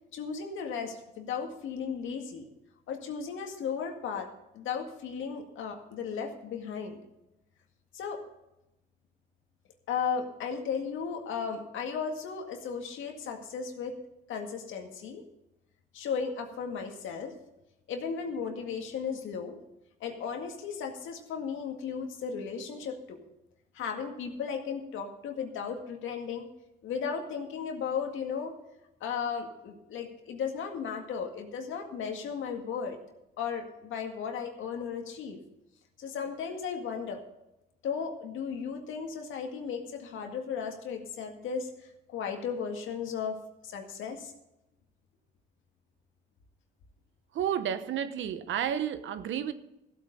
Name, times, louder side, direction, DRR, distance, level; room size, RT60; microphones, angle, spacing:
voice 1, 0.1-2.5 2.9-4.3 4.5-7.0 7.9-8.2 9.9-14.0 14.3-15.2 15.9-17.4 17.9-19.6 20.0-23.2 23.7-26.5 26.8-28.6 29.0-33.0 33.4-35.4 36.0-37.2 37.8-41.7 42.1-44.3, left 6 dB, 80° left, 4 dB, 2.0 m, -35 dB
voice 2, 47.3-49.5, right 9 dB, 75° right, 12 dB, 1.0 m, -31 dB
15.0 x 8.5 x 5.4 m, 0.91 s
cardioid pair, 90°, 20 cm